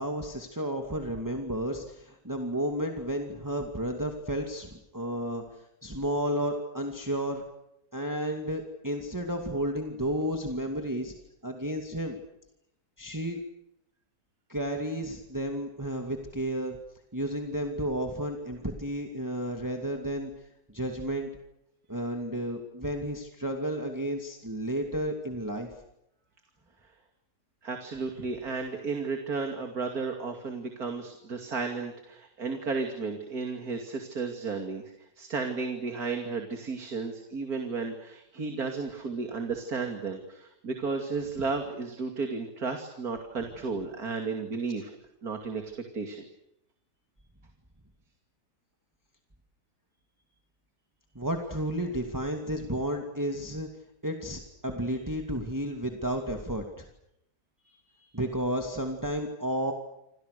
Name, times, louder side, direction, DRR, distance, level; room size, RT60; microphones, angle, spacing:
voice 1, 0.0-5.4 5.8-7.4 7.9-11.1 11.4-12.2 13.0-13.4 14.5-16.8 17.1-20.3 20.7-21.3 21.9-25.7 51.1-53.7 54.0-56.9 58.1-59.7, right 1 dB, 10° right, 3 dB, 2.4 m, -32 dB
voice 2, 27.6-45.0 45.2-46.2 57.7-58.1, right 4 dB, 60° right, 4 dB, 3.1 m, -33 dB
28.5 x 26.5 x 6.8 m, 0.82 s
omnidirectional pair, 1.8 m